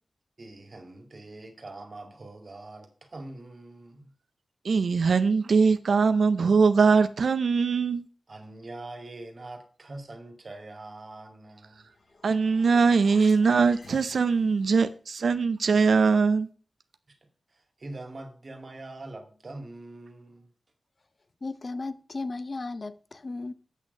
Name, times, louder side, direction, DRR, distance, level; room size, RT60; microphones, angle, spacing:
voice 1, 0.4-4.1 8.3-11.9 17.1-17.2 17.5-20.5, right 2 dB, 45° right, 2.1 m, -43 dB
voice 2, 4.6-8.1 12.2-16.5, right 5 dB, 80° right, 0.5 m, -22 dB
sound 1, 11.7-14.8, left 2 dB, 80° left, 5.0 m, -50 dB
voice 3, 21.4-23.5, left 3 dB, 40° left, 0.6 m, -35 dB
8.4 x 6.2 x 5.4 m
wide cardioid pair, 125°, 0 cm